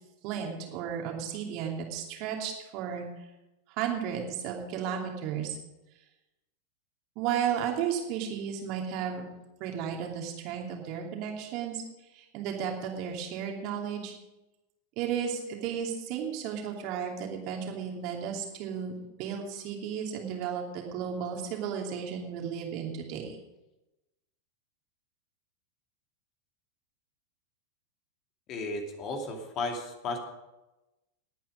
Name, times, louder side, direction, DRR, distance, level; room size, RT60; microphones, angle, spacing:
voice 1, 0.2-3.1 3.8-5.6 7.2-9.3 9.6-11.8 12.1-14.1 15.0-18.9 19.2-23.4, right 8 dB, 45° right, 1 dB, 2.8 m, -34 dB
voice 2, 28.5-30.2, left 2 dB, 35° left, 3 dB, 2.6 m, -34 dB
19.5 x 9.2 x 5.2 m, 1.0 s
figure-of-eight pair, 90°, 0 cm